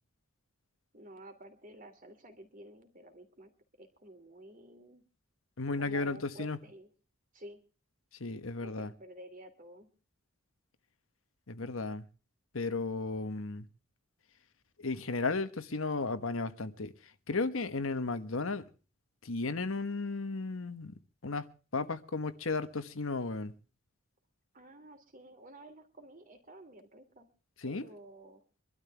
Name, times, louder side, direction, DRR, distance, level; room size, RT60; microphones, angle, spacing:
voice 1, 0.9-3.5 3.8-5.0 5.7-6.9 7.3-7.6 8.6-9.9 24.5-27.3 27.6-28.4, right 1 dB, 40° right, 2.9 m, -52 dB
voice 2, 5.6-6.6 8.2-8.9 11.5-12.0 12.5-13.6 14.8-16.9 17.3-18.6 19.2-20.9 21.2-23.5 27.6-27.8, left 3 dB, 75° left, 1.2 m, -34 dB
24.5 x 12.5 x 3.4 m
head